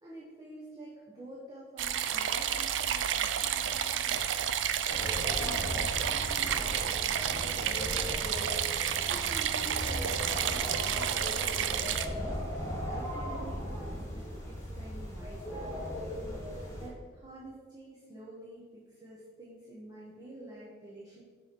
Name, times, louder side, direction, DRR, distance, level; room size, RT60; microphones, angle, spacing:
voice 1, 0.0-21.2, right 1 dB, 20° right, -6 dB, 1.0 m, -49 dB
sound 1, 1.8-12.1, right 9 dB, 75° right, 0.4 m, -31 dB
sound 2, 4.9-16.9, equal, 15° left, 1.6 m, -37 dB
5.6 x 4.4 x 5.2 m, 1.5 s
head